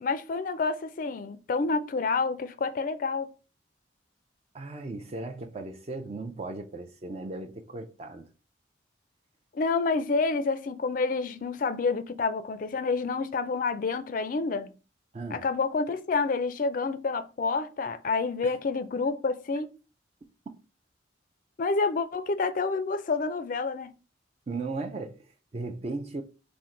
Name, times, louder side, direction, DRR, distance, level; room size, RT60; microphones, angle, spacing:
voice 1, 0.0-3.3 9.5-14.7 15.3-19.7 21.6-23.9, left 4 dB, 45° left, 0.3 m, -28 dB
voice 2, 4.5-8.3 15.1-15.4 18.4-18.6 24.5-26.2, right 3 dB, 30° right, 0.4 m, -37 dB
4.4 x 2.1 x 3.6 m
head